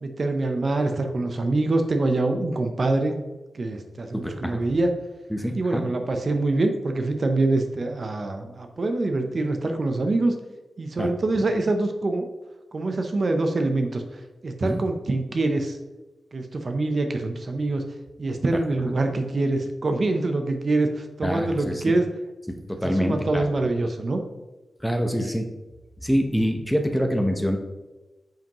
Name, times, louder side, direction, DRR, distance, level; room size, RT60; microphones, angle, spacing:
voice 1, 0.0-3.2 3.5-4.9 5.5-10.3 10.8-12.3 12.7-14.0 14.4-15.8 16.3-17.8 18.2-22.0 22.8-24.2 25.2-25.3, right 2 dB, 45° right, 5 dB, 0.7 m, -25 dB
voice 2, 4.1-4.6 5.3-5.9 11.0-11.1 14.6-14.8 18.9-19.0 21.2-21.9 22.5-23.4 24.8-25.5 26.0-27.6, equal, 5° left, 4 dB, 0.8 m, -25 dB
9.0 x 5.2 x 3.0 m, 1.1 s
wide cardioid pair, 120°, 0 cm